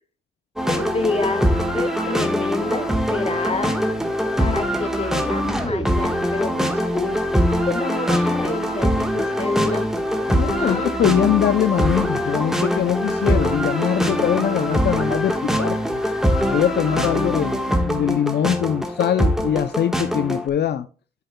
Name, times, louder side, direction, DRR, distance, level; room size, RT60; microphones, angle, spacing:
sound 1, 0.6-20.5, equal, ahead, 1.3 m, -22 dB
voice 1, 0.7-3.8 4.4-7.2 7.6-9.9 10.6-10.9 17.1-17.2, left 3 dB, 30° left, 1.4 m, -28 dB
voice 2, 10.3-16.0 16.5-20.9, left 10 dB, 60° left, 0.5 m, -22 dB
11.0 x 8.0 x 2.2 m
cardioid pair, 85°, 20 cm